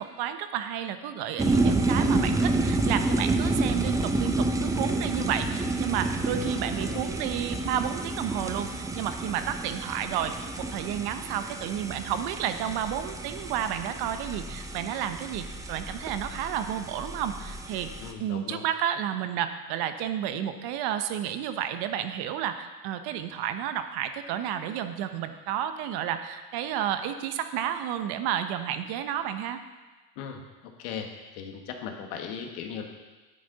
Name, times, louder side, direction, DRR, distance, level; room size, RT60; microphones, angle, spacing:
voice 1, 0.0-17.9 18.2-29.6, right 10 dB, 55° right, 9 dB, 0.9 m, -31 dB
sound 1, 1.4-18.1, right 2 dB, 5° right, 0.5 m, -29 dB
voice 2, 6.4-7.2 18.0-18.6 30.2-30.4 30.8-31.1 31.3-32.8, left 7 dB, 70° left, 4 dB, 1.6 m, -38 dB
9.6 x 9.1 x 4.0 m, 1.2 s
supercardioid pair, 115°, 47 cm